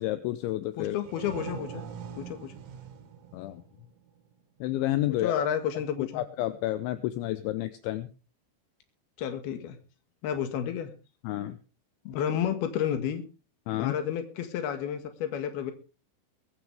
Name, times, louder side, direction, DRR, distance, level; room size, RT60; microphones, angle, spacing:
voice 1, 0.0-1.0 3.3-3.6 4.6-5.3 6.0-8.1 11.2-11.6 13.7-13.9, left 15 dB, 80° left, 11 dB, 3.0 m, -30 dB
voice 2, 0.8-1.8 2.2-2.5 5.1-6.2 9.2-9.8 10.2-10.9 12.0-13.2 13.8-15.7, left 9 dB, 60° left, 7 dB, 3.2 m, -31 dB
sound 1, 0.8-4.4, right 8 dB, 75° right, 4.5 m, -43 dB
22.5 x 9.9 x 3.5 m, 0.33 s
omnidirectional pair, 5.7 m